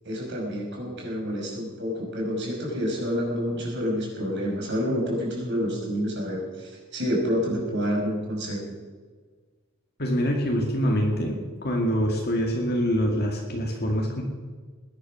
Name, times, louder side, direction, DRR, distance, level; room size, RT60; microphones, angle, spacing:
voice 1, 0.0-8.6, equal, 55° right, -1 dB, 5.6 m, -28 dB
voice 2, 10.0-11.3 11.6-14.2, equal, 50° left, 0 dB, 2.2 m, -25 dB
19.5 x 11.5 x 6.2 m, 1.5 s
head